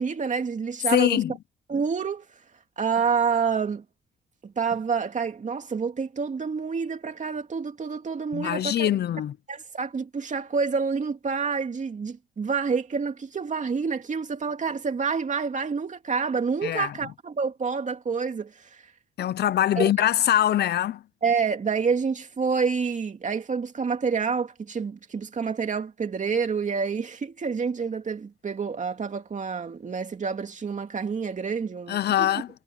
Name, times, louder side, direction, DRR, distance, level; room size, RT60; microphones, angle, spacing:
voice 1, 0.0-1.2 1.7-2.2 2.8-3.8 4.4-8.9 9.5-18.8 19.8-19.9 21.2-32.3, right 5 dB, 40° right, 2.6 m, -28 dB
voice 2, 0.9-1.3 8.3-9.3 16.6-16.9 19.2-21.0 31.9-32.5, left 11 dB, 55° left, 0.7 m, -23 dB
cardioid pair, 90°, 20 cm